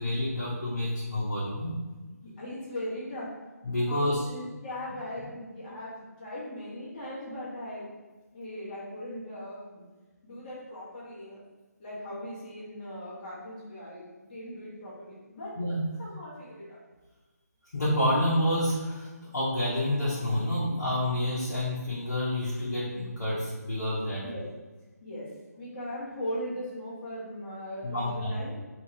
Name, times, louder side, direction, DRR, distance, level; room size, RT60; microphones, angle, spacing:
voice 1, 0.0-1.7 3.6-4.3 15.6-15.9 17.7-24.2 27.8-28.3, left 1 dB, 65° left, -8 dB, 1.0 m, -28 dB
voice 2, 2.2-3.3 3.9-7.8 8.3-9.8 10.2-11.4 11.8-15.5 16.0-16.8 24.1-24.4 25.0-25.3 25.6-28.5, left 1 dB, 30° left, -8 dB, 1.3 m, -39 dB
2.8 x 2.6 x 3.2 m, 1.2 s
figure-of-eight pair, 150°, 9 cm